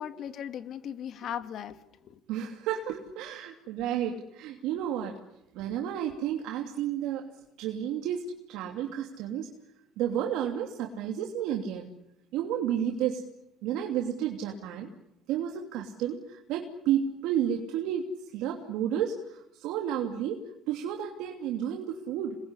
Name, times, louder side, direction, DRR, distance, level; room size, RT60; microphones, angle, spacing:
voice 1, 0.0-2.2, left 9 dB, 55° left, 10 dB, 2.1 m, -38 dB
voice 2, 2.3-5.2 5.5-7.3 7.6-8.2 8.5-9.5 10.0-11.9 12.3-13.2 13.6-14.9 15.3-18.1 18.3-20.4 20.7-22.4, right 10 dB, 80° right, 2 dB, 2.9 m, -31 dB
28.0 x 21.0 x 10.0 m, 0.86 s
cardioid pair, 110°, 0 cm